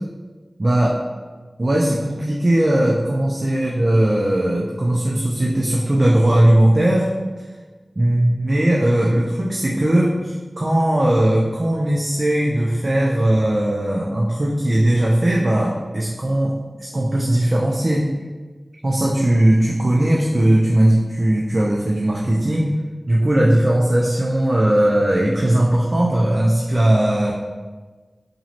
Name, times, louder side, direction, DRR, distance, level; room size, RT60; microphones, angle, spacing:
voice 1, 0.6-0.9 1.6-7.4 8.0-16.5 16.8-18.1 18.8-22.7 23.1-27.3, right 1 dB, 45° right, -3 dB, 0.4 m, -18 dB
4.0 x 3.0 x 2.9 m, 1.3 s
wide cardioid pair, 50°, 0 cm